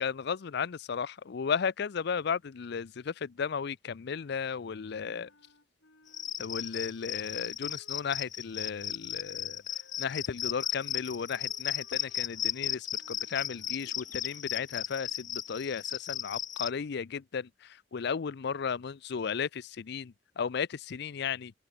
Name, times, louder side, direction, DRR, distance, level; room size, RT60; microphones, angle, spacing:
voice 1, 0.0-5.3 6.4-9.6 10.0-21.5, left 6 dB, 60° left, 0.5 m, -34 dB
Wind instrument woodwind instrument, 4.2-8.3 9.1-14.5, left 2 dB, 90° left, 6.3 m, -63 dB
Cricket, 6.1-16.7, left 10 dB, 45° left, 1.6 m, -35 dB
open air
head